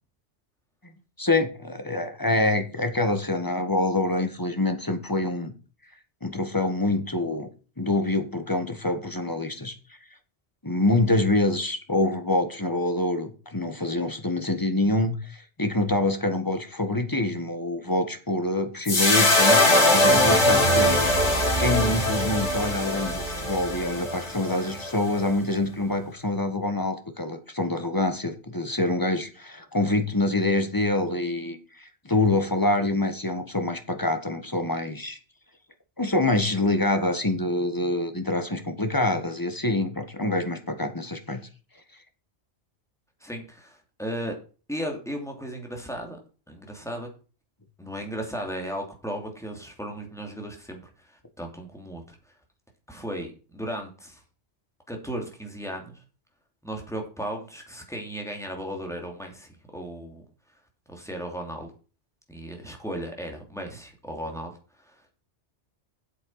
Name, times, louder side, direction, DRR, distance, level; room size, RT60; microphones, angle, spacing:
voice 1, 1.2-5.5 6.2-7.5 7.8-9.7 10.6-21.1 21.6-35.2 36.0-41.5, left 2 dB, 20° left, 1.5 m, -26 dB
sound 1, 18.9-25.2, left 1 dB, 80° left, 3.2 m, -21 dB
voice 2, 43.2-44.3 44.7-46.2 46.5-47.1 47.8-52.2 52.9-54.2 54.9-56.0 56.6-60.2 60.9-61.7 62.3-64.6 64.9-65.0, equal, 5° left, 2.8 m, -35 dB
8.4 x 7.8 x 5.7 m
omnidirectional pair, 1.2 m